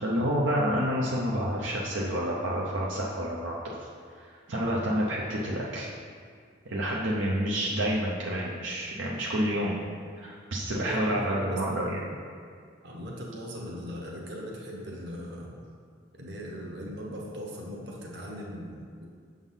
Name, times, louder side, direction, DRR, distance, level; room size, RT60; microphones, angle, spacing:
voice 1, 0.0-3.9 4.2-5.9 6.7-9.8 10.2-12.0, equal, 80° right, -4 dB, 0.7 m, -29 dB
voice 2, 10.7-11.6 12.0-12.2 12.8-15.6 16.2-19.1, equal, 55° right, -2 dB, 1.1 m, -39 dB
7.1 x 3.7 x 5.6 m, 2.2 s
head